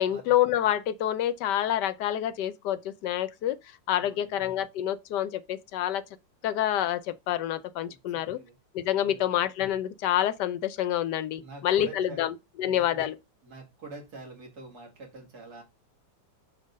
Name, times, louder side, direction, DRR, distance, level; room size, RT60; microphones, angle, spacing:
voice 1, 0.0-3.6 3.9-6.0 6.4-8.4 8.7-13.2, left 11 dB, 75° left, 1.2 m, -27 dB
voice 2, 4.0-4.5 7.9-8.6 9.0-9.4 11.4-12.3 12.6-13.1 13.4-15.6, right 3 dB, 60° right, 2.6 m, -46 dB
6.3 x 3.8 x 5.3 m
omnidirectional pair, 1.9 m